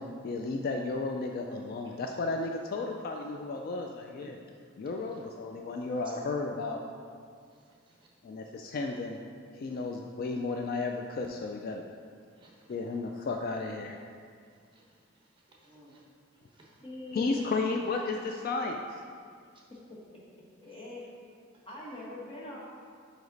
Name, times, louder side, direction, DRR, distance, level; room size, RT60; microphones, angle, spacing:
voice 1, 0.2-4.3 4.8-6.8 8.2-9.2 9.5-11.8 12.7-14.0 17.1-19.0, left 3 dB, 45° left, 3 dB, 0.3 m, -33 dB
voice 2, 7.5-8.1 9.7-9.8 12.3-12.8 14.4-16.0 16.3-16.8 19.5-19.6 20.6-20.7 21.5-21.7, right 3 dB, 25° right, -3 dB, 0.9 m, -61 dB
voice 3, 16.8-17.5 19.7-19.8 20.6-21.0 21.6-22.6, left 2 dB, 25° left, -6 dB, 1.2 m, -42 dB
5.1 x 4.9 x 3.9 m, 2.1 s
head